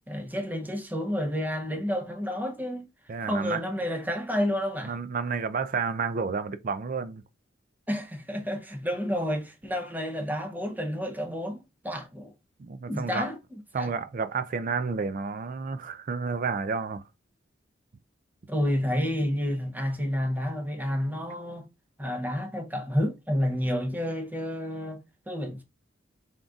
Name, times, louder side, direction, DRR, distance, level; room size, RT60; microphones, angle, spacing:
voice 1, 0.1-2.9 3.3-5.0 7.9-12.3 12.9-13.9 18.5-21.7 22.0-25.6, equal, 10° right, 0.7 m, -30 dB
voice 2, 3.1-3.6 4.8-7.2 12.6-13.3 13.7-17.0, right 5 dB, 45° right, 0.4 m, -30 dB
3.9 x 3.6 x 2.3 m
head